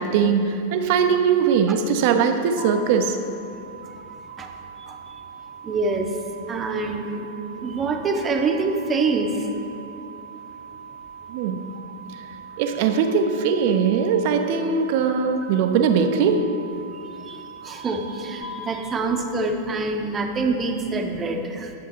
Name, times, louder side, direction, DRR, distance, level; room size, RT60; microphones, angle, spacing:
voice 1, 0.0-3.2 11.3-11.7 12.6-16.4, right 6 dB, 50° right, 7 dB, 0.7 m, -20 dB
sound 1, 2.6-18.4, right 5 dB, 40° left, 1.2 m, -41 dB
voice 2, 5.6-6.1 6.5-7.3 7.6-9.3 17.3-17.4 17.6-21.7, right 3 dB, 20° right, 4 dB, 0.9 m, -25 dB
10.5 x 7.5 x 4.4 m, 2.8 s
figure-of-eight pair, 90°, 0 cm